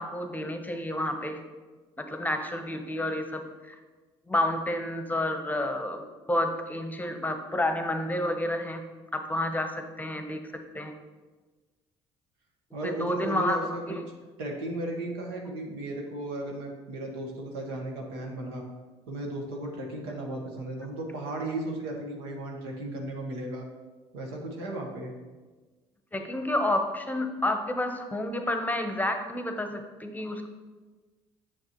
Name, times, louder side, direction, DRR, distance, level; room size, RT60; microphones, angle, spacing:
voice 1, 0.0-1.4 2.0-3.7 4.3-6.0 6.3-8.8 9.1-10.4 10.7-10.9 12.8-14.0 26.1-30.5, left 1 dB, 15° left, 6 dB, 0.8 m, -30 dB
voice 2, 12.7-14.0 14.4-18.7 19.1-23.7 24.1-25.1, right 1 dB, 90° right, 0 dB, 1.2 m, -35 dB
6.6 x 6.5 x 3.0 m, 1.3 s
supercardioid pair, 75°, 13 cm